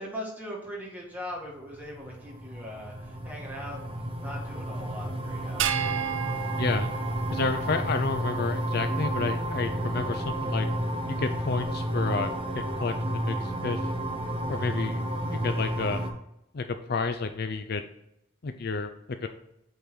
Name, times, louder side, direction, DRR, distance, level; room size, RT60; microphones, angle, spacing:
voice 1, 0.0-6.4, equal, 10° right, -3 dB, 2.1 m, -41 dB
sound 1, 1.7-16.1, right 1 dB, 30° right, 0.9 m, -31 dB
sound 2, 5.6-8.2, right 9 dB, 65° right, 0.5 m, -32 dB
voice 2, 6.6-6.9 7.3-10.7 11.1-13.9 14.5-16.0 16.5-17.8 18.4-19.3, left 4 dB, 50° left, 7 dB, 0.5 m, -31 dB
8.3 x 3.9 x 4.4 m, 0.83 s
head